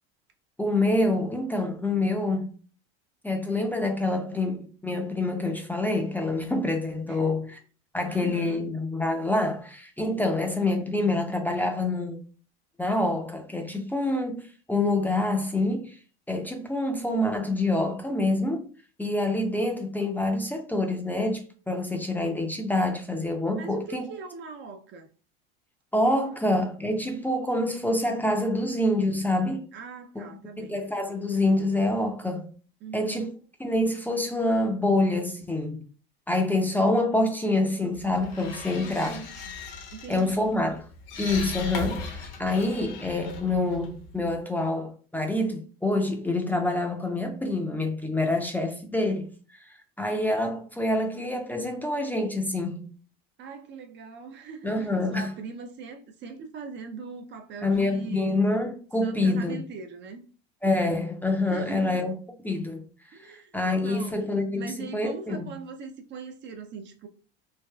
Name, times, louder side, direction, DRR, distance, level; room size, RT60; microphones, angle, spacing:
voice 1, 0.6-2.5 3.2-7.6 7.9-12.2 12.8-16.0 16.3-18.6 19.0-24.1 25.9-29.7 30.2-30.3 30.6-32.5 32.9-33.3 33.6-35.8 36.3-39.2 40.1-40.8 41.2-49.3 49.6-52.9 54.6-55.3 57.6-59.6 60.6-62.1 62.4-62.8 63.2-65.5, left 2 dB, 5° left, 0.5 m, -26 dB
voice 2, 8.1-8.7 23.5-25.1 29.7-30.8 32.8-33.3 38.8-39.3 39.9-40.5 53.4-58.4 59.0-60.2 61.5-62.1 63.1-67.1, right 4 dB, 40° right, 0.5 m, -41 dB
sound 1, 37.9-44.4, left 5 dB, 70° left, 1.0 m, -38 dB
3.4 x 2.3 x 2.2 m
hypercardioid pair, 95°, 29 cm